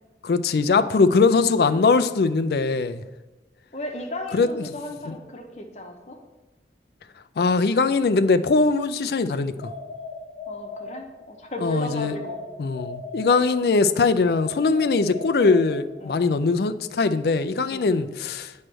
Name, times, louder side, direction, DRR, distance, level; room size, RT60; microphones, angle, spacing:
voice 1, 0.2-3.0 4.3-4.6 7.4-9.5 11.6-12.1 12.6-18.5, left 4 dB, 65° left, 11 dB, 0.4 m, -21 dB
voice 2, 3.7-6.2 10.5-12.4 16.0-16.3 17.7-17.9, left 1 dB, 40° left, 2 dB, 0.9 m, -35 dB
sound 1, 9.6-11.4 11.9-13.8 14.3-16.2, left 3 dB, 35° right, 2.4 m, -38 dB
8.8 x 3.2 x 6.2 m, 1.1 s
head